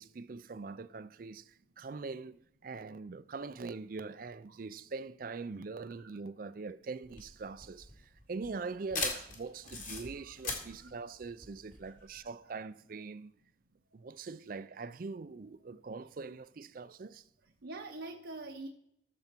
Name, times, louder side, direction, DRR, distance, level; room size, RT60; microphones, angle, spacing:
voice 1, 0.0-13.3 13.9-17.2, right 4 dB, 45° right, 0.4 m, -43 dB
sound 1, 7.0-12.2, left 4 dB, 40° left, 2.3 m, -40 dB
voice 2, 10.2-11.0 11.8-12.5 17.6-18.7, right 2 dB, 75° right, 0.9 m, -47 dB
14.0 x 7.0 x 4.4 m
head